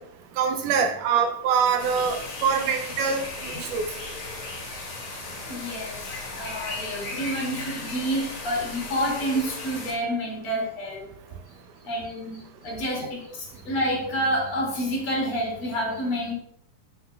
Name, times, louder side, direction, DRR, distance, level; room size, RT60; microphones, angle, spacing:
voice 1, 0.4-3.9, right 6 dB, 80° right, 5 dB, 2.0 m, -24 dB
sound 1, 1.8-9.9, left 2 dB, 75° left, 3.7 m, -36 dB
voice 2, 5.5-11.1 11.8-16.3, equal, 40° left, -2 dB, 2.8 m, -29 dB
12.0 x 5.7 x 2.2 m, 0.67 s
omnidirectional pair, 4.0 m